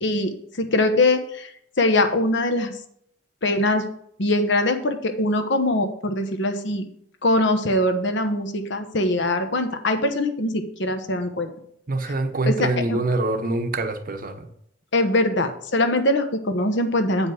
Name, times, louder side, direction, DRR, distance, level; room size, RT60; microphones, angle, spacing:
voice 1, 0.0-1.5 1.8-2.7 3.4-3.9 4.2-6.9 7.2-11.5 12.0-12.1 12.5-13.0 14.9-17.3, left 1 dB, 60° left, 8 dB, 1.0 m, -22 dB
voice 2, 11.9-14.5, right 2 dB, 40° right, 8 dB, 0.9 m, -25 dB
8.3 x 5.3 x 6.2 m, 0.69 s
head